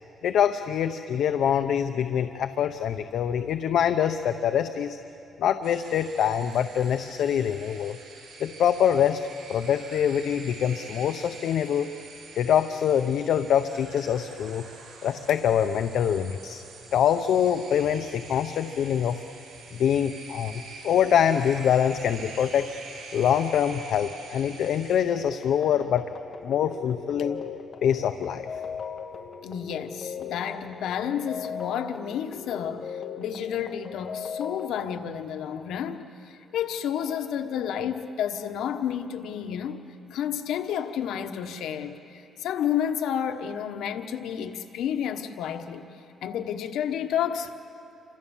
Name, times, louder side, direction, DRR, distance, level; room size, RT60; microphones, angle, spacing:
voice 1, 0.2-5.0 5.4-8.0 8.4-9.2 9.5-11.9 12.4-14.6 15.0-16.6 16.9-19.2 19.8-22.7 23.1-26.0 26.4-27.4 27.8-28.6, left 9 dB, 65° left, 8 dB, 0.7 m, -24 dB
sound 1, 5.6-25.0, right 4 dB, 85° right, 6.9 m, -45 dB
sound 2, 25.0-34.7, left 6 dB, 40° left, 1.4 m, -39 dB
voice 2, 29.4-39.8 40.1-45.9 46.2-47.5, left 9 dB, 85° left, 7 dB, 1.3 m, -31 dB
29.0 x 25.5 x 7.3 m, 2.7 s
cardioid pair, 150°, 0 cm